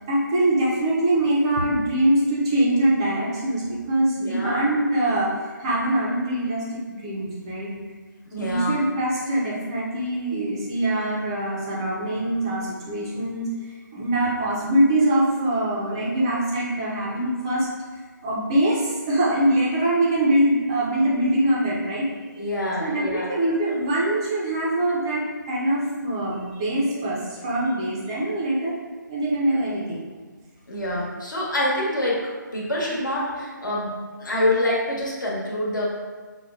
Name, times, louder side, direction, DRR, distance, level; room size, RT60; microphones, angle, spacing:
voice 1, 0.1-7.7 8.4-13.5 13.9-17.7 18.2-22.1 22.8-28.7 29.1-30.0, right 1 dB, 15° right, -6 dB, 0.4 m, -23 dB
voice 2, 4.2-4.6 8.3-8.7 22.4-23.3 30.7-33.9 34.2-35.8, left 1 dB, 70° left, -5 dB, 1.2 m, -26 dB
5.4 x 2.1 x 2.4 m, 1.4 s
figure-of-eight pair, 155°, 11 cm